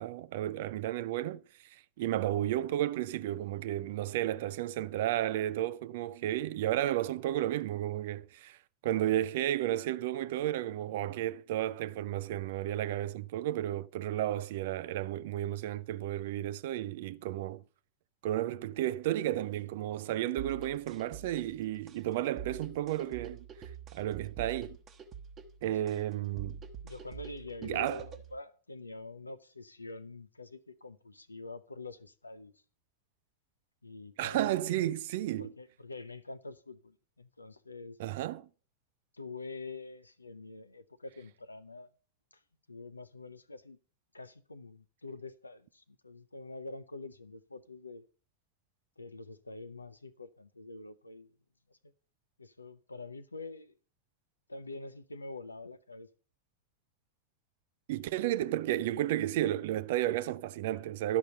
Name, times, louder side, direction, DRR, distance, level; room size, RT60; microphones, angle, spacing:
voice 1, 0.0-1.4 1.7-8.6 8.8-17.6 18.2-23.5 23.9-24.8 25.6-26.6 27.6-28.0 34.2-35.5 38.0-38.4 57.9-61.2, right 13 dB, 55° right, 0.4 m, -32 dB
sound 1, 20.4-28.4, right 7 dB, 25° right, 1.0 m, -46 dB
voice 2, 26.8-32.6 33.8-34.9 35.4-38.0 39.1-41.9 42.3-42.4 42.7-43.8 44.1-48.0 49.0-51.3 51.7-51.9 52.4-53.7 54.5-56.1, left 3 dB, 80° left, 0.7 m, -46 dB
12.0 x 5.4 x 6.7 m
figure-of-eight pair, 90°, 0 cm